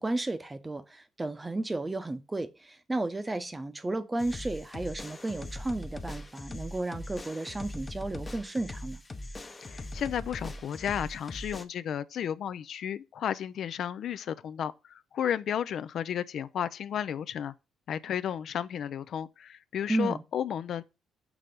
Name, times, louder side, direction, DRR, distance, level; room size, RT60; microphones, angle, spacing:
voice 1, 0.0-9.0 19.9-20.2, right 2 dB, 20° right, 0.7 m, -33 dB
sound 1, 4.2-11.6, left 1 dB, 25° left, 0.7 m, -41 dB
voice 2, 9.6-17.5 17.9-20.8, left 9 dB, 65° left, 0.3 m, -33 dB
6.0 x 3.2 x 5.1 m
cardioid pair, 90°, 0 cm